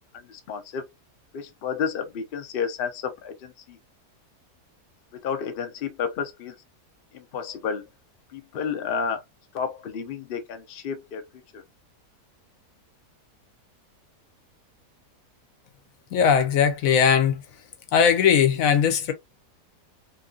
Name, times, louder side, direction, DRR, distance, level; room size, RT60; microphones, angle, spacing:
voice 1, 0.1-0.8 1.3-3.8 5.2-6.5 7.1-7.8 8.3-9.2 9.5-11.2 11.5-11.6, left 6 dB, 85° left, 0.5 m, -31 dB
voice 2, 16.1-17.4 17.9-19.1, left 7 dB, 65° left, 1.0 m, -19 dB
2.9 x 2.6 x 2.3 m
omnidirectional pair, 1.7 m